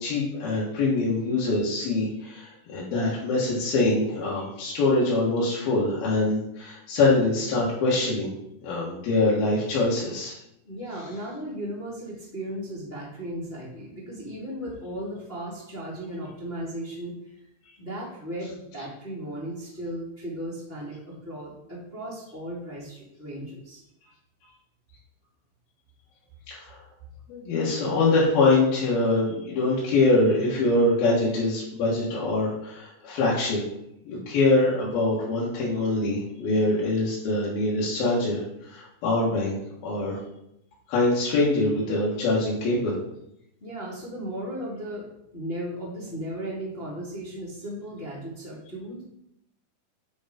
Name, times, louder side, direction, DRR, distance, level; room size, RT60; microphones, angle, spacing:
voice 1, 0.0-8.3 8.6-10.3 26.5-26.8 27.3-33.6 34.1-40.2 40.9-43.0, left 2 dB, 60° left, -7 dB, 3.2 m, -24 dB
voice 2, 10.6-17.1 17.8-23.8 43.6-45.1 45.3-49.0, right 1 dB, 20° left, -7 dB, 1.8 m, -36 dB
9.3 x 5.1 x 5.2 m, 0.80 s
omnidirectional pair, 5.4 m